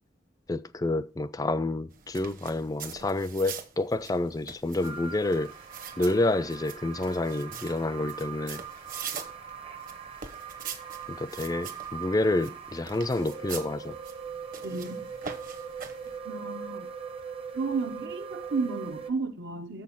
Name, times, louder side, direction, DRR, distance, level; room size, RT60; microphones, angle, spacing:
voice 1, 0.5-5.5 6.0-8.6 11.1-14.0, left 2 dB, 20° left, 0.4 m, -28 dB
sound 1, 1.9-16.2, right 7 dB, 50° right, 1.1 m, -44 dB
sound 2, 4.8-19.1, right 6 dB, 30° right, 0.7 m, -41 dB
voice 2, 14.6-15.1 16.2-16.9 17.5-19.8, right 4 dB, 70° right, 0.9 m, -33 dB
6.9 x 6.2 x 5.7 m
head